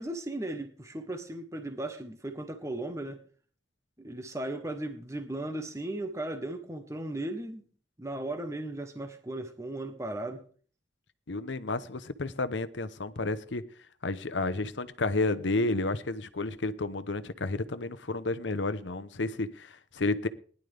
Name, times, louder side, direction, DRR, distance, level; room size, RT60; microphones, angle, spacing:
voice 1, 0.0-3.2 4.0-7.6 8.0-10.4, right 1 dB, 15° right, 1.0 m, -36 dB
voice 2, 11.3-13.6 14.0-20.3, left 2 dB, 80° left, 0.9 m, -31 dB
19.5 x 11.0 x 3.5 m
head